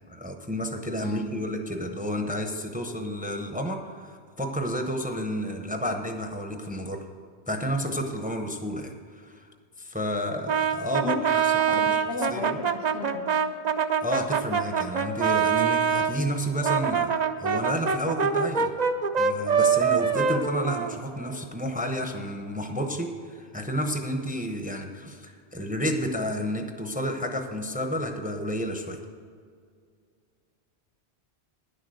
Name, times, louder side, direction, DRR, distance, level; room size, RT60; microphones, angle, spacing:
voice 1, 0.1-7.1 7.5-9.5 9.8-12.0 12.3-12.6 14.0-18.7 19.2-29.0, equal, 10° right, 4 dB, 0.7 m, -31 dB
voice 2, 1.0-1.5 10.9-11.2 11.6-13.3, left 4 dB, 75° left, 5 dB, 1.2 m, -34 dB
Brass instrument, 10.5-16.1 16.6-21.4, right 6 dB, 45° right, 0.6 m, -25 dB
10.5 x 6.6 x 7.7 m, 2.1 s
omnidirectional pair, 1.1 m